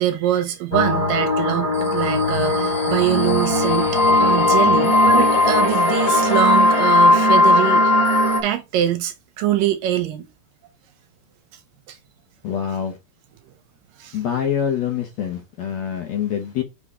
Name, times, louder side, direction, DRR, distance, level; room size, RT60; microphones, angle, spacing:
voice 1, 0.0-3.9 4.2-7.9 8.4-10.2 11.9-12.0 14.0-14.2, right 12 dB, 75° right, 2.3 m, -23 dB
sound 1, 0.7-8.4, left 2 dB, 20° left, 1.0 m, -17 dB
voice 2, 12.4-13.0 14.1-16.6, left 8 dB, 65° left, 1.9 m, -25 dB
5.7 x 4.8 x 4.9 m
omnidirectional pair, 4.3 m